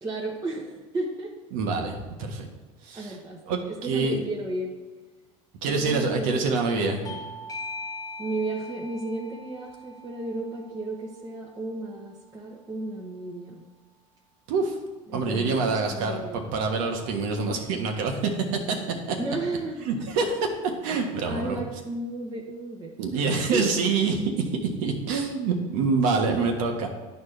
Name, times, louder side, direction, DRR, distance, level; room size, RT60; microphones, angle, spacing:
voice 1, 0.0-1.3 2.9-4.7 5.7-7.2 8.2-13.6 15.1-16.6 19.2-20.1 21.2-23.2 23.5-23.9, right 2 dB, 20° right, -4 dB, 1.1 m, -33 dB
voice 2, 1.5-2.5 2.8-3.2 3.5-4.2 5.6-7.0 14.5-14.7 15.1-18.8 19.1-19.2 19.8-20.4 20.8-21.6 23.0-26.9, right 4 dB, 75° right, 2 dB, 1.3 m, -26 dB
Bell / Doorbell, 7.0-12.2, left 2 dB, 20° left, 0.5 m, -41 dB
11.0 x 4.5 x 3.3 m, 1.3 s
supercardioid pair, 100°, 18 cm